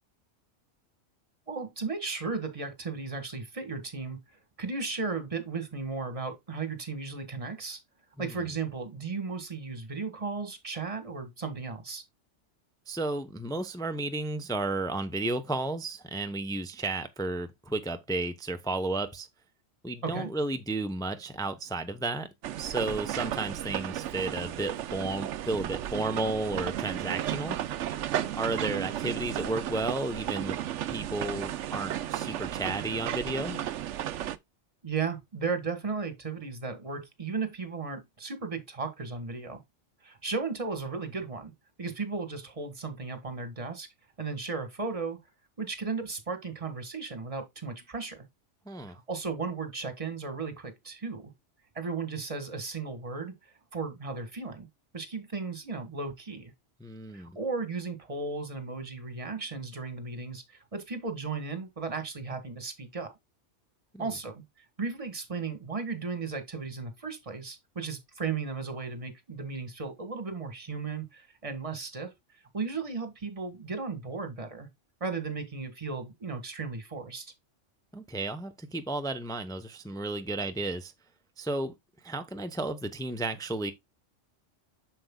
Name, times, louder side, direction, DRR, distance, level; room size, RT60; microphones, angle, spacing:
voice 1, 1.5-4.2 4.6-7.8 8.2-12.0 20.0-20.3 34.8-39.6 40.0-41.5 41.8-43.9 44.2-45.2 45.6-48.3 48.9-51.3 51.7-53.3 53.7-54.7 54.9-56.5 57.1-63.1 64.0-64.4 64.8-72.1 72.5-74.7 75.0-77.3, right 4 dB, 30° right, 1.6 m, -35 dB
voice 2, 8.2-8.5 12.9-19.3 19.8-22.3 22.6-27.6 28.4-30.6 30.9-33.6 48.7-49.0 56.8-57.4 63.9-64.1 77.9-80.9 81.4-81.7 82.0-83.7, right 2 dB, 5° left, 0.6 m, -33 dB
sound 1, 22.4-34.4, right 11 dB, 80° right, 0.9 m, -34 dB
7.7 x 6.8 x 2.2 m
omnidirectional pair, 1.2 m